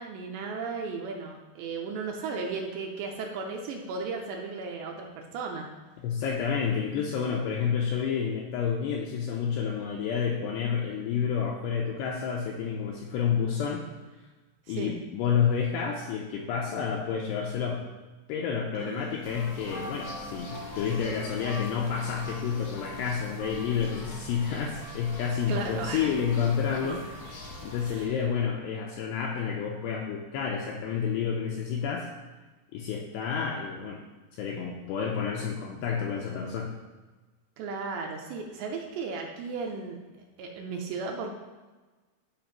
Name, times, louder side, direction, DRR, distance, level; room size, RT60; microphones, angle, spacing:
voice 1, 0.0-5.7 14.7-15.0 18.8-19.2 25.5-26.1 27.8-28.2 37.6-40.0 40.4-41.3, right 4 dB, 85° right, 1 dB, 2.7 m, -35 dB
voice 2, 6.0-13.8 14.7-17.8 18.3-27.0 27.6-32.1 32.7-34.0 34.4-36.7, left 7 dB, 90° left, -1 dB, 2.4 m, -29 dB
sound 1, 19.2-28.0, left 2 dB, 75° left, 1.5 m, -41 dB
12.5 x 5.0 x 3.0 m, 1.2 s
omnidirectional pair, 5.4 m